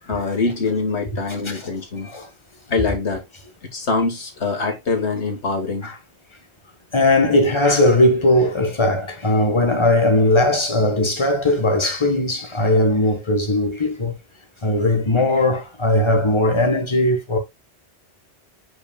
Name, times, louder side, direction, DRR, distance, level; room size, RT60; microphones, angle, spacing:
voice 1, 0.1-2.1 2.7-3.2 3.7-5.9, left 4 dB, 90° left, 2.0 m, -24 dB
voice 2, 1.3-1.7 2.0-2.3 5.8-5.9 6.9-14.1 14.6-17.4, left 1 dB, 25° left, 1.4 m, -18 dB
8.1 x 5.2 x 2.3 m
omnidirectional pair, 1.1 m